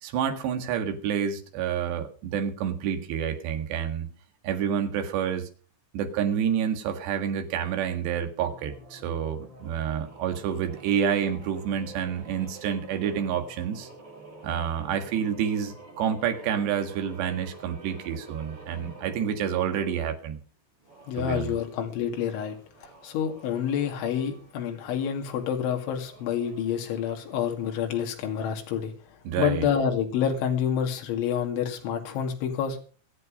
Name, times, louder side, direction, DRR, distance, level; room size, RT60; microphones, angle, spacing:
voice 1, 0.0-4.1 4.4-5.5 5.9-13.9 14.4-20.4 21.2-21.6 29.3-29.7, right 8 dB, 65° right, 7 dB, 3.7 m, -28 dB
sound 1, 8.4-20.1 20.8-27.9, right 2 dB, 30° right, 5.2 m, -49 dB
voice 2, 21.1-22.6 22.8-28.9 29.4-32.8, left 8 dB, 70° left, 3 dB, 4.6 m, -28 dB
23.5 x 8.3 x 5.3 m, 0.40 s
omnidirectional pair, 5.8 m